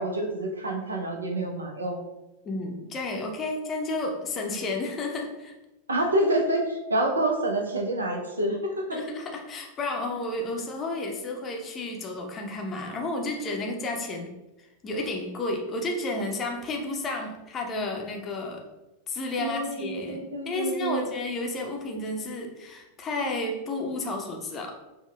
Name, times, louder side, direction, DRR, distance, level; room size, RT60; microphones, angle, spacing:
voice 1, 0.0-2.0 5.9-9.0 19.4-21.1, right 1 dB, 75° right, 2 dB, 0.5 m, -27 dB
voice 2, 2.4-5.5 8.9-14.3 14.8-18.6 19.1-24.8, left 2 dB, 25° left, 2 dB, 0.6 m, -32 dB
5.5 x 2.2 x 2.3 m, 1.0 s
figure-of-eight pair, 90°, 0 cm